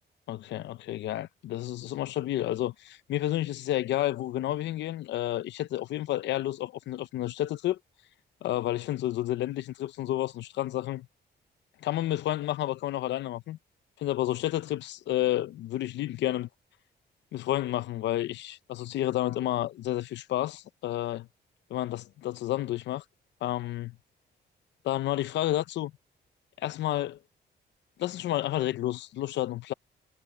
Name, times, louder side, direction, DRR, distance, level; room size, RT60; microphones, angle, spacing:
voice 1, 0.3-7.8 8.4-11.1 11.8-13.6 14.0-16.5 17.3-21.3 21.7-23.0 23.4-23.9 24.8-25.9 26.6-27.2 28.0-29.7, left 14 dB, 85° left, 0.7 m, -30 dB
cardioid pair, 175°, 18 cm